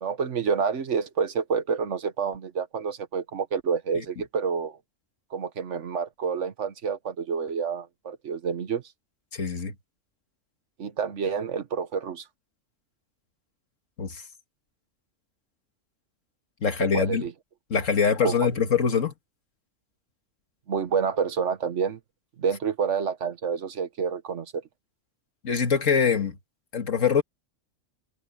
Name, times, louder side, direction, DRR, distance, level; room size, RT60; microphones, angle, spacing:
voice 1, 0.0-4.8 5.3-8.8 10.8-12.3 16.8-17.3 18.2-18.5 20.7-22.0 22.4-24.6, right 6 dB, 70° right, 1.4 m, -28 dB
voice 2, 9.3-9.7 14.0-14.2 16.6-17.3 17.7-19.1 25.4-26.3 26.7-27.2, left 6 dB, 80° left, 2.2 m, -23 dB
omnidirectional pair, 1.3 m